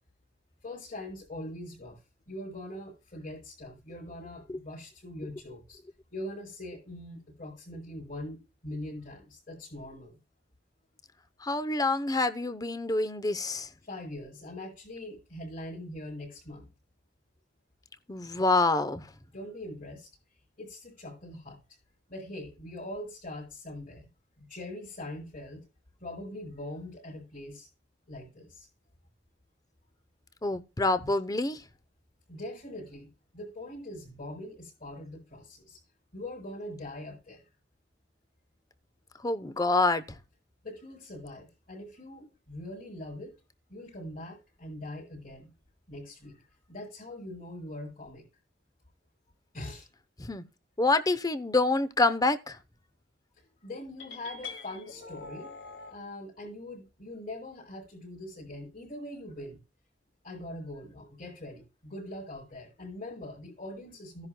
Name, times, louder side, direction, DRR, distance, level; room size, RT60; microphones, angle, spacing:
voice 1, 0.6-2.0 2.3-5.8 6.1-10.2 13.8-16.7 19.3-20.1 20.6-21.6 22.1-24.1 24.4-25.7 26.0-27.7 28.1-28.7 31.0-31.1 32.3-35.8 36.1-37.5 40.6-43.4 43.7-45.5 45.9-48.3 49.5-49.9 53.4-55.6 55.9-59.6 60.2-64.3, left 1 dB, 50° left, 5.4 m, -42 dB
voice 2, 11.4-13.7 18.1-19.0 30.4-31.6 39.2-40.0 50.2-50.4 50.8-52.6, left 3 dB, 20° left, 0.8 m, -26 dB
sound 1, 54.0-56.0, left 4 dB, 85° left, 1.8 m, -44 dB
15.5 x 10.5 x 2.3 m
head